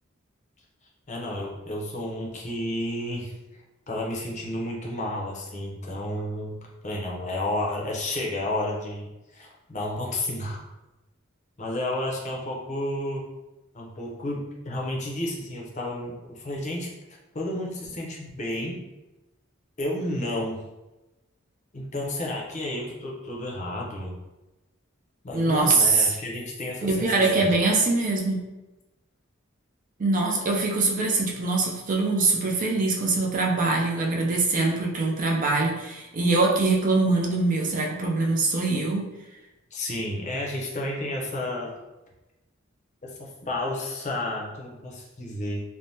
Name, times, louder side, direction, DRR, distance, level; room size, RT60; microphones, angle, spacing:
voice 1, 1.1-3.3 3.9-6.6 6.8-10.6 11.6-13.2 13.7-16.9 17.3-18.8 19.8-20.6 21.7-24.1 25.2-27.5 39.7-41.7 43.0-45.6, left 1 dB, 35° left, -2 dB, 0.6 m, -31 dB
voice 2, 25.3-26.2 26.8-28.4 30.0-39.0, right 3 dB, 40° right, -1 dB, 0.4 m, -23 dB
3.3 x 2.1 x 2.7 m, 1.0 s
head